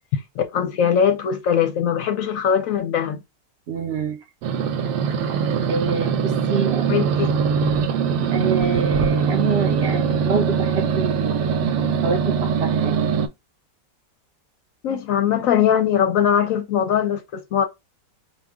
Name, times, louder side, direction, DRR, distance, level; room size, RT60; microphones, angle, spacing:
voice 1, 0.1-3.2 6.9-7.3 7.6-7.7 14.8-17.6, left 8 dB, 65° left, 0.9 m, -21 dB
voice 2, 3.7-4.2 5.7-7.0 8.3-11.7 12.0-13.0, right 5 dB, 70° right, 0.6 m, -26 dB
sound 1, 4.4-13.3, right 6 dB, 85° right, 1.2 m, -22 dB
4.7 x 2.3 x 3.5 m
omnidirectional pair, 1.8 m